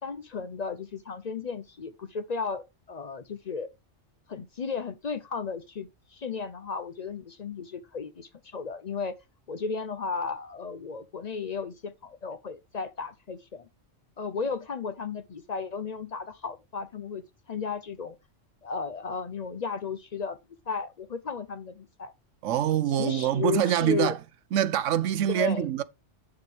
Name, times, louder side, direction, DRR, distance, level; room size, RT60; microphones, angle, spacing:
voice 1, 0.0-3.7 4.3-9.2 9.5-13.7 14.2-18.1 18.6-20.4 20.7-22.1 23.0-24.2 25.3-25.7, left 5 dB, 50° left, 0.5 m, -34 dB
voice 2, 22.4-24.2 24.5-25.8, right 10 dB, 85° right, 1.0 m, -25 dB
7.9 x 6.8 x 3.3 m
omnidirectional pair, 1.3 m